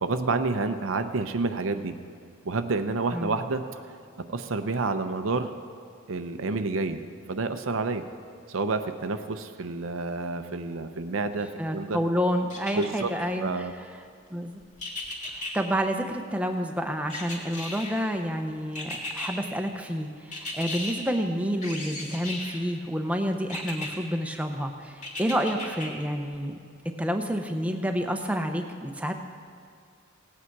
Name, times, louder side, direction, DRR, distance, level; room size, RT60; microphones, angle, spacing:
voice 1, 0.0-2.0 2.4-3.6 4.3-5.5 6.1-7.0 7.3-8.1 8.5-12.0 12.8-13.7, right 3 dB, 80° right, 8 dB, 0.6 m, -29 dB
voice 2, 11.6-13.7 14.3-14.6 15.5-26.6 27.0-29.3, equal, 5° right, 4 dB, 0.7 m, -29 dB
sound 1, 12.5-13.3 14.8-15.5 17.1-18.1 18.8-19.3 20.3-20.9 21.6-22.6 23.5-23.9 25.0-25.9 26.3-26.4, left 2 dB, 35° left, 2.1 m, -35 dB
17.5 x 8.6 x 4.6 m, 2.3 s
head